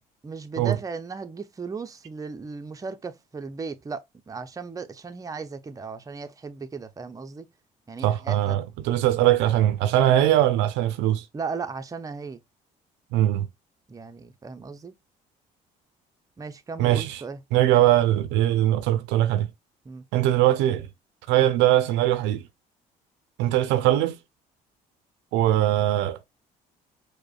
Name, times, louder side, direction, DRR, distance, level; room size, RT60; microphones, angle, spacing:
voice 1, 0.2-7.5 7.9-8.6 11.3-12.4 13.9-14.9 16.4-17.4 19.8-20.0, right 4 dB, 20° right, 0.5 m, -36 dB
voice 2, 8.0-11.2 13.1-13.5 16.8-17.2 17.5-19.5 20.1-20.9 21.3-22.4 23.4-24.2 25.3-26.3, right 13 dB, 80° right, 0.4 m, -21 dB
4.8 x 2.1 x 2.3 m
supercardioid pair, 70°, 18 cm